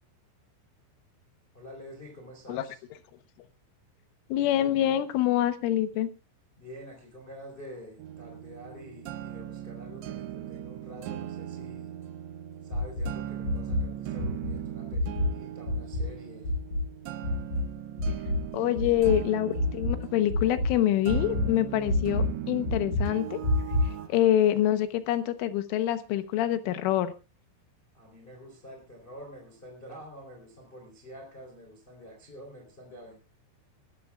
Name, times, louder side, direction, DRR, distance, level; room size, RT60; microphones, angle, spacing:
voice 1, 1.5-2.8 6.6-11.9 12.7-16.5 18.6-18.8 23.8-24.3 27.9-33.2, equal, 10° left, 1 dB, 3.2 m, -47 dB
voice 2, 4.3-6.1 18.5-23.4 24.1-27.1, left 12 dB, 85° left, 10 dB, 3.6 m, -26 dB
sound 1, 8.0-24.1, right 11 dB, 75° right, 3.1 m, -39 dB
sound 2, 12.7-13.1 13.4-13.9 14.2-14.5 14.9-15.4 15.7-16.1 16.4-16.8 17.2-17.6 18.0-18.5 18.8-19.2 19.6-20.0 20.3-20.7 21.1-21.5 21.9-22.3 22.7-23.1 23.4-23.9, left 1 dB, 35° left, 7.5 m, -27 dB
22.0 x 14.0 x 2.4 m, 0.30 s
omnidirectional pair, 5.6 m